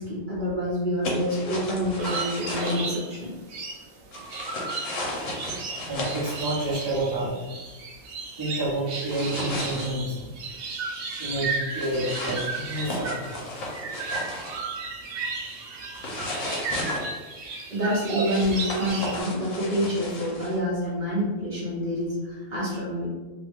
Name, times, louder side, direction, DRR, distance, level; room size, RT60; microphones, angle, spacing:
voice 1, 0.0-3.3 17.7-23.1, equal, 35° right, -8 dB, 1.1 m, -27 dB
sound 1, 1.0-2.8 4.1-6.8 9.1-9.9 11.8-14.6 15.9-17.0 18.3-20.6, left 1 dB, 70° left, 1.2 m, -34 dB
sound 2, 2.0-19.2, right 4 dB, 65° right, 0.6 m, -35 dB
voice 2, 5.9-7.3 8.4-10.3 11.2-13.4 18.1-18.2, right 1 dB, 20° right, -9 dB, 0.8 m, -29 dB
2.9 x 2.3 x 3.4 m, 1.2 s
omnidirectional pair, 1.4 m